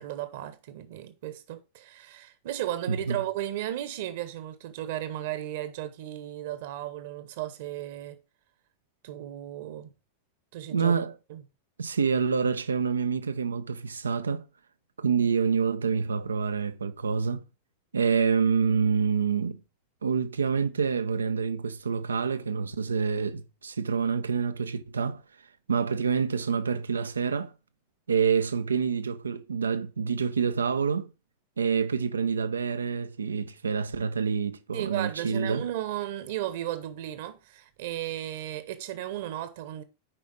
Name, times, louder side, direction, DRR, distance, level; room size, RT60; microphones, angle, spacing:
voice 1, 0.0-8.2 9.0-9.9 10.5-10.9 11.3-11.4 34.7-39.8, right 13 dB, 55° right, 1.3 m, -35 dB
voice 2, 10.7-11.2 11.8-14.5 15.0-17.4 17.9-19.6 20.0-25.2 25.7-27.5 28.1-31.1 31.6-35.6, right 6 dB, 75° right, 0.7 m, -27 dB
8.8 x 5.2 x 5.1 m
figure-of-eight pair, 90°, 0 cm